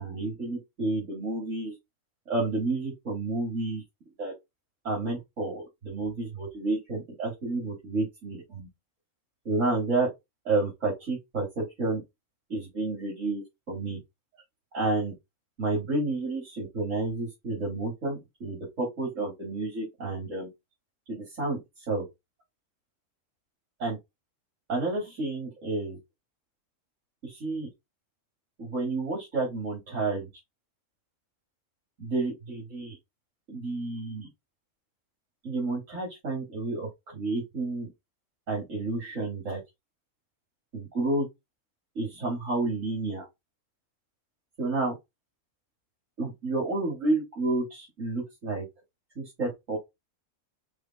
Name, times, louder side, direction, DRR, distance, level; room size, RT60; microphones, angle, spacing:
voice 1, 0.0-1.7 2.3-3.8 4.2-4.3 4.8-8.7 9.4-10.1 10.4-12.0 12.5-14.0 14.7-15.1 15.6-20.5 21.1-21.6 21.9-22.0 23.8-24.0 24.7-26.0 27.2-27.7 28.6-30.3 32.0-33.0 33.5-34.3 35.4-37.9 38.5-39.6 40.7-41.3 42.0-43.3 44.6-44.9 46.2-48.7 49.2-49.8, right 2 dB, 70° right, 2.6 m, -30 dB
5.0 x 3.3 x 2.3 m
omnidirectional pair, 1.4 m